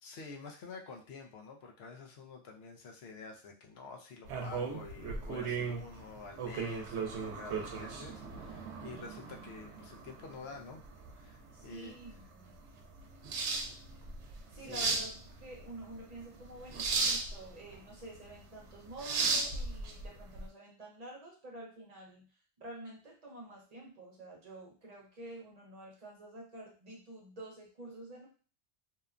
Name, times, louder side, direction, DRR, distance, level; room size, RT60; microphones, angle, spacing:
voice 1, 0.0-10.8 11.2-11.9 14.6-14.9, left 4 dB, 70° left, 2 dB, 0.8 m, -49 dB
sound 1, 4.2-20.4, right 4 dB, 85° right, 0.9 m, -37 dB
voice 2, 11.5-12.6 13.7-13.8 14.5-22.3 22.6-28.3, right 1 dB, 40° right, -2 dB, 0.8 m, -49 dB
2.8 x 2.1 x 2.4 m, 0.37 s
omnidirectional pair, 1.1 m